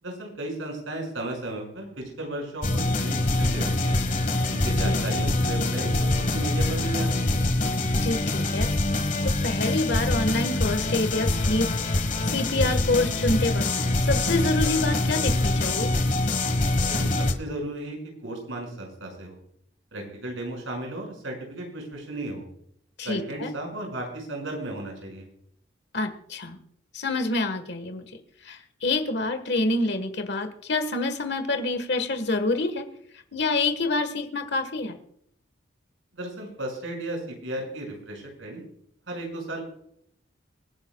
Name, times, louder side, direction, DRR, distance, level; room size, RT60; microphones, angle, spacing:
voice 1, 0.0-4.0 4.5-7.4 16.9-19.4 19.9-22.4 23.0-25.3 36.1-38.6 39.1-39.6, right 1 dB, 85° right, 1 dB, 5.8 m, -35 dB
sound 1, 2.6-17.3, left 2 dB, 40° left, 1.3 m, -24 dB
voice 2, 7.9-8.7 9.2-11.7 12.2-13.7 14.0-15.9 23.0-23.5 25.9-26.6 26.9-28.0 28.4-32.8 33.3-35.0, left 2 dB, 60° left, 8 dB, 1.4 m, -27 dB
25.5 x 10.5 x 2.3 m, 0.67 s
head